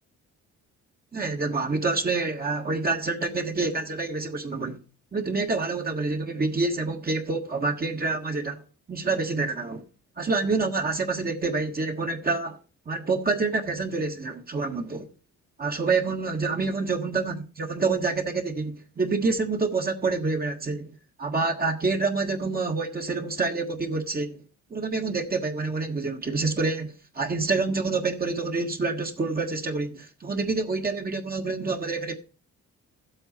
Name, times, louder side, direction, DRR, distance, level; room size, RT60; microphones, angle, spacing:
voice 1, 1.1-4.8 5.1-9.8 10.2-12.6 12.9-15.1 15.6-20.9 21.2-24.4 24.7-32.1, right 3 dB, 30° right, 1.5 m, -27 dB
11.5 x 7.9 x 4.2 m
cardioid pair, 90°, 30 cm